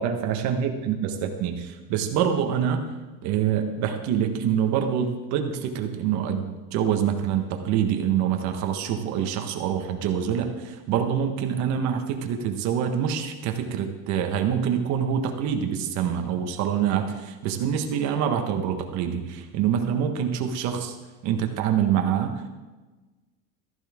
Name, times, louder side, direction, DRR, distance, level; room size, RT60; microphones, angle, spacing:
voice 1, 0.0-2.9 3.2-20.9 21.2-22.5, right 8 dB, 45° right, 5 dB, 1.4 m, -26 dB
14.5 x 14.5 x 3.7 m, 1.2 s
cardioid pair, 175°, 38 cm